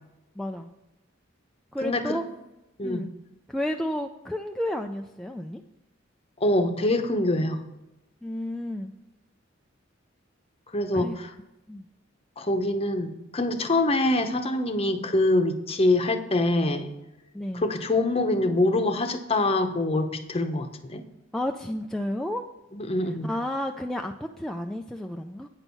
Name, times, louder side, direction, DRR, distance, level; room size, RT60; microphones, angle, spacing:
voice 1, 0.4-0.7 1.7-2.2 2.8-3.1 3.5-5.6 8.2-8.9 10.9-11.2 11.7-11.9 17.3-17.7 21.3-22.5 23.2-25.5, left 1 dB, 5° left, 2 dB, 0.3 m, -31 dB
voice 2, 1.8-2.2 2.8-3.0 6.4-7.6 10.7-11.3 12.4-16.9 17.5-21.0 22.7-23.3, left 2 dB, 30° left, 7 dB, 0.8 m, -25 dB
9.0 x 6.2 x 5.5 m, 0.97 s
head